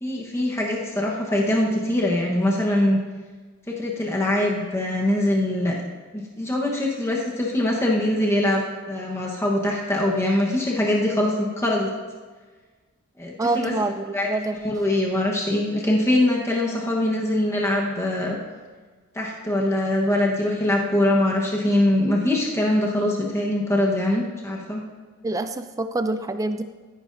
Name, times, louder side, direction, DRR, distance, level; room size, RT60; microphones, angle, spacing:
voice 1, 0.0-3.0 3.7-5.8 6.1-8.6 8.9-11.9 13.2-13.7 14.1-14.3 14.6-18.4 19.1-24.8, left 1 dB, 10° left, -2 dB, 1.1 m, -23 dB
voice 2, 13.4-14.6 25.2-26.6, right 2 dB, 15° right, 9 dB, 0.3 m, -26 dB
13.5 x 10.5 x 2.6 m, 1.4 s
head